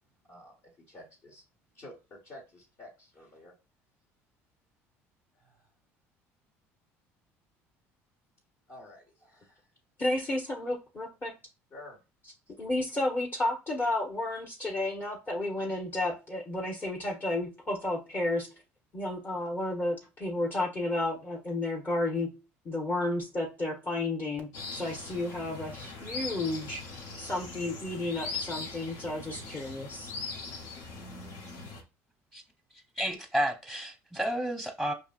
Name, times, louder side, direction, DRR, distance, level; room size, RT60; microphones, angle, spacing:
voice 1, 0.9-1.4 1.7-3.5 5.3-5.7 8.7-9.7 10.1-10.3 11.7-12.0, left 1 dB, 45° left, 1.6 m, -50 dB
voice 2, 10.0-11.3 12.6-18.5 18.9-22.3 22.6-26.8 27.2-30.1, left 2 dB, 30° left, 1.2 m, -32 dB
sound 1, 24.5-31.8, left 4 dB, 70° left, 0.9 m, -41 dB
voice 3, 33.0-34.9, equal, 5° left, 0.9 m, -31 dB
4.8 x 2.8 x 2.5 m
hypercardioid pair, 75°, 7 cm